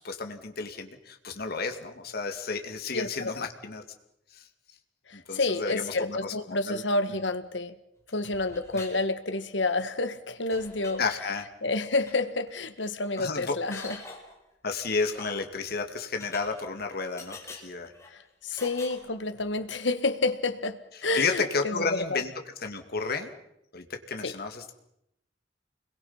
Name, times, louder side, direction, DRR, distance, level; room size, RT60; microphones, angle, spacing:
voice 1, 0.0-3.8 4.3-4.5 5.1-6.8 11.0-11.4 13.2-13.5 14.6-17.9 18.5-18.6 21.1-22.3 22.6-23.3 23.7-24.7, left 4 dB, 60° left, 5 dB, 2.3 m, -32 dB
voice 2, 2.9-3.5 5.1-7.8 8.1-11.0 11.6-14.0 18.1-22.2 24.2-24.3, left 3 dB, 75° left, 10 dB, 1.7 m, -29 dB
sound 1, 8.1-9.0 9.3-9.8 10.1-10.2 10.5-11.0 12.0-12.2 12.5-12.6 12.8-13.3 13.7-14.4 15.0-15.5 16.2-16.9 17.2-18.1 18.6-19.5, left 3 dB, 15° left, 4.9 m, -46 dB
29.5 x 22.0 x 5.7 m, 0.81 s
head